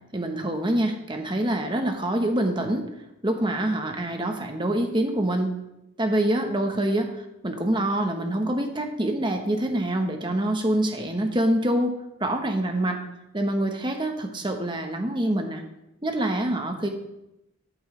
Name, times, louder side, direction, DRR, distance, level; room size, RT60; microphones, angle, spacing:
voice 1, 0.1-2.9 3.2-5.5 6.0-13.0 13.3-15.6 16.0-16.9, right 1 dB, 25° right, 4 dB, 1.2 m, -25 dB
13.5 x 8.9 x 3.4 m, 0.89 s
head